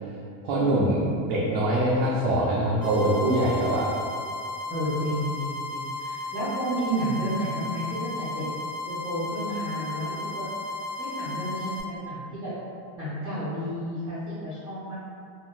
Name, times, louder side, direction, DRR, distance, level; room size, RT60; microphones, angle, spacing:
voice 1, 0.4-3.9, right 1 dB, 55° right, -6 dB, 0.6 m, -23 dB
sound 1, 2.8-11.8, left 2 dB, 40° left, 1.3 m, -34 dB
voice 2, 4.7-8.4 8.9-10.5 11.0-12.5 12.9-14.9, right 1 dB, 10° right, -14 dB, 0.6 m, -31 dB
3.7 x 2.2 x 2.4 m, 2.4 s
cardioid pair, 145°, 48 cm